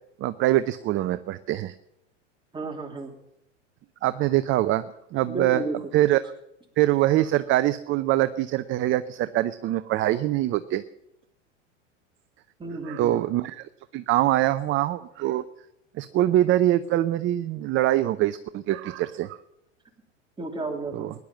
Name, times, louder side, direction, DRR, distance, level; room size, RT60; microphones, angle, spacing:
voice 1, 0.2-1.7 4.0-4.8 5.1-5.6 5.9-6.2 6.8-10.8 12.9-15.4 15.9-19.4 20.9-21.1, right 14 dB, 35° right, 13 dB, 0.6 m, -24 dB
voice 2, 2.5-3.1 5.3-5.9 12.6-13.2 20.4-21.1, right 3 dB, 15° right, 1 dB, 3.0 m, -32 dB
17.5 x 11.0 x 7.2 m, 0.83 s
hypercardioid pair, 100°, 37 cm